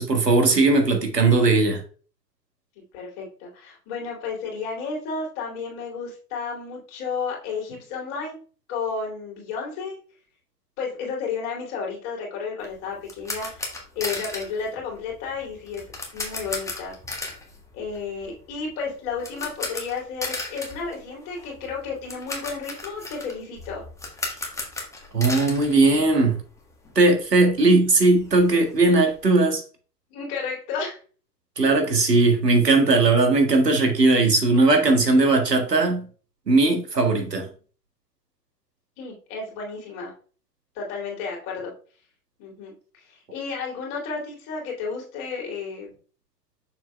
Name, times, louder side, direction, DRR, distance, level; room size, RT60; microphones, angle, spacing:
voice 1, 0.0-1.8 25.1-26.3 26.9-29.6 31.6-36.0 36.5-37.5, right 3 dB, 80° right, 4 dB, 1.7 m, -18 dB
voice 2, 2.9-8.3 8.7-10.0 10.8-15.8 16.1-16.9 17.7-23.8 30.1-31.0 39.0-40.1 40.7-41.7 42.4-45.9, left 5 dB, 40° left, -1 dB, 2.7 m, -32 dB
sound 1, 12.6-26.6 26.8-27.0 27.4-27.5 27.7-29.3, left 2 dB, 5° left, 1.3 m, -36 dB
6.8 x 6.6 x 2.3 m, 0.40 s
figure-of-eight pair, 95°, 48 cm